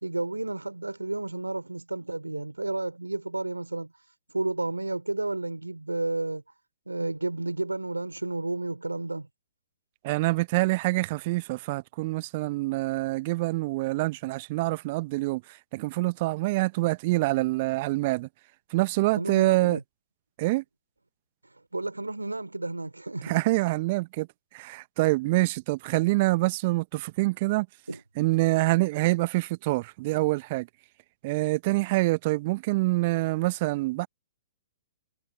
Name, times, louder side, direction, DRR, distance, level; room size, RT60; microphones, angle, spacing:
voice 1, 0.0-3.9 4.3-6.4 6.9-9.3 19.2-19.8 21.7-23.3 27.9-28.0, right 2 dB, 85° right, 3.0 m, -31 dB
voice 2, 10.0-18.3 18.7-19.8 20.4-20.6 23.2-24.3 24.5-27.7 28.2-30.7 31.2-34.1, right 21 dB, 40° right, 1.0 m, -26 dB
figure-of-eight pair, 115°, 0 cm